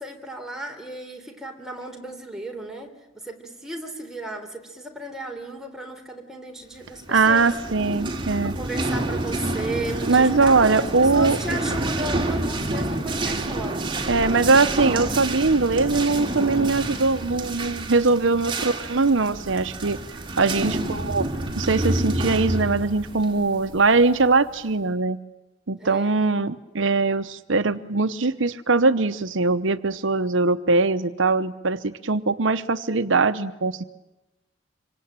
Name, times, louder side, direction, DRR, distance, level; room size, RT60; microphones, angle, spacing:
voice 1, 0.0-7.6 8.4-13.9 18.4-18.6 20.5-20.9 25.8-26.1, right 1 dB, 5° right, 2 dB, 3.7 m, -35 dB
sound 1, 7.0-24.4, right 2 dB, 25° right, 2.8 m, -28 dB
voice 2, 7.1-8.5 10.1-11.4 14.1-20.0 20.4-21.3 21.6-25.2 25.7-33.8, right 3 dB, 70° right, 12 dB, 0.9 m, -21 dB
26.5 x 25.0 x 8.9 m, 0.99 s
head